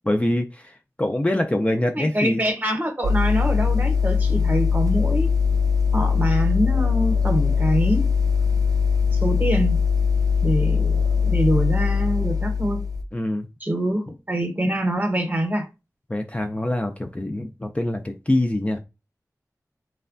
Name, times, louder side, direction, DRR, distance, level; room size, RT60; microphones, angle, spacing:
voice 1, 0.0-2.4 13.1-13.5 16.1-18.8, left 1 dB, 20° left, 0.3 m, -24 dB
voice 2, 1.9-5.3 5.9-8.1 9.2-9.8 10.4-12.8 13.6-15.7, right 1 dB, 30° right, 0.8 m, -24 dB
sound 1, 3.0-13.0, left 6 dB, 70° right, 0.4 m, -21 dB
3.2 x 2.2 x 2.5 m
wide cardioid pair, 50°, 6 cm